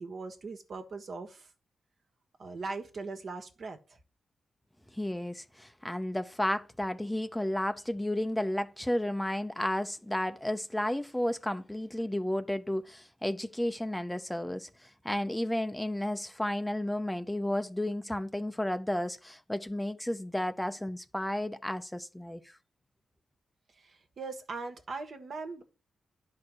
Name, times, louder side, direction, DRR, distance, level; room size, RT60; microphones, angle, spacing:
voice 1, 0.0-1.5 2.4-3.8 23.8-25.6, right 3 dB, 60° right, 1.5 m, -40 dB
voice 2, 4.9-22.6, left 1 dB, 5° left, 0.6 m, -32 dB
10.5 x 4.4 x 6.3 m
cardioid pair, 75°, 0 cm